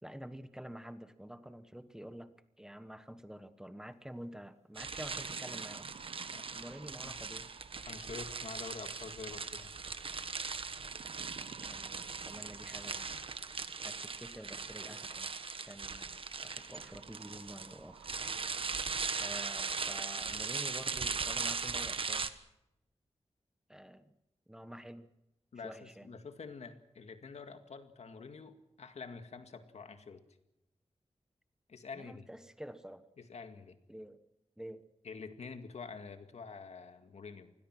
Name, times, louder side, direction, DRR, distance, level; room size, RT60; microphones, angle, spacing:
voice 1, 0.0-2.3 2.6-5.9 6.5-7.5 11.6-13.2 13.8-15.3 15.6-16.1 16.4-18.1 19.2-22.3 23.7-24.1 24.5-25.1 25.6-26.1 31.9-33.0 33.9-34.2 34.6-34.8, equal, 5° right, 11 dB, 1.2 m, -48 dB
sound 1, 4.2-4.3 4.8-8.2 9.6-10.0 10.8-13.6 14.9-15.0 16.5-19.4 19.8-19.9 20.5-20.6 20.8-21.4, right 6 dB, 80° right, 1.1 m, -56 dB
sound 2, 4.8-22.3, right 5 dB, 55° right, 1.3 m, -39 dB
sound 3, 6.9-13.4, right 2 dB, 35° right, 7.9 m, -61 dB
voice 2, 7.9-9.7 25.5-30.2 31.7-32.3 33.2-33.8 35.0-37.5, left 5 dB, 80° left, 7 dB, 2.1 m, -47 dB
27.5 x 20.5 x 6.1 m, 0.91 s
wide cardioid pair, 135°, 11 cm